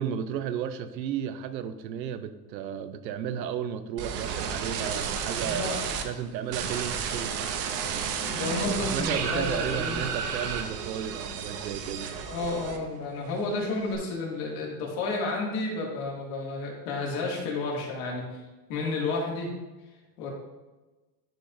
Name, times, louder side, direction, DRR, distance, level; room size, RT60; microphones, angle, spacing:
voice 1, 0.0-5.7 6.0-7.4 8.7-12.1, right 9 dB, 90° right, 11 dB, 0.7 m, -33 dB
sound 1, 4.0-6.0 6.5-13.1 13.4-14.0, right 7 dB, 30° right, 0.5 m, -32 dB
voice 2, 5.4-5.9 8.2-10.0 12.3-18.2 18.7-19.5 20.2-20.3, left 3 dB, 50° left, -2 dB, 2.2 m, -31 dB
10.5 x 4.6 x 2.6 m, 1.2 s
supercardioid pair, 140°, 49 cm